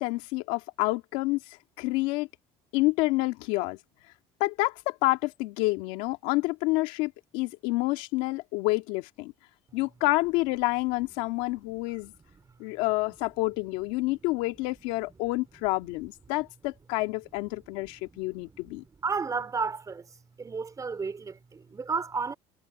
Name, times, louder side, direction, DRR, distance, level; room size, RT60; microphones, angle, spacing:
voice 1, 0.0-1.4 1.8-2.3 2.7-3.8 4.4-9.3 9.7-12.1 12.6-18.8, left 21 dB, 80° left, 2.0 m, -28 dB
voice 2, 19.0-20.0 20.4-22.3, right 5 dB, 25° right, 4.4 m, -32 dB
supercardioid pair, 90°, 12 cm